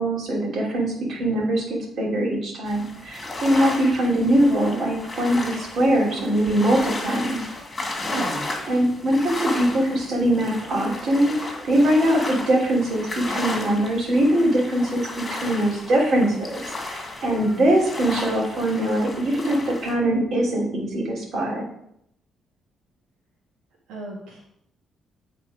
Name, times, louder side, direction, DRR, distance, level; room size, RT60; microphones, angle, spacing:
voice 1, 0.0-1.6 2.0-7.4 8.7-21.6, right 1 dB, 60° right, -2 dB, 2.8 m, -22 dB
sound 1, 2.7-19.9, left 2 dB, 25° left, 2.0 m, -34 dB
voice 2, 23.9-24.4, right 3 dB, 90° right, -4 dB, 1.7 m, -33 dB
8.6 x 4.2 x 4.9 m, 0.74 s
cardioid pair, 90°, 0 cm